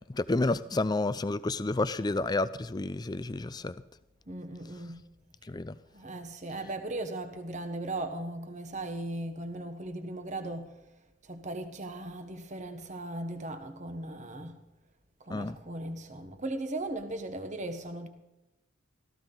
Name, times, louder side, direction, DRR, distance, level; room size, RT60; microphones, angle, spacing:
voice 1, 0.1-3.8 5.5-5.7 15.3-15.6, left 2 dB, 20° left, 0.4 m, -30 dB
voice 2, 4.3-5.0 5.9-10.7 11.2-14.6 15.2-18.1, right 2 dB, 35° right, 1.3 m, -37 dB
17.0 x 14.5 x 4.0 m
head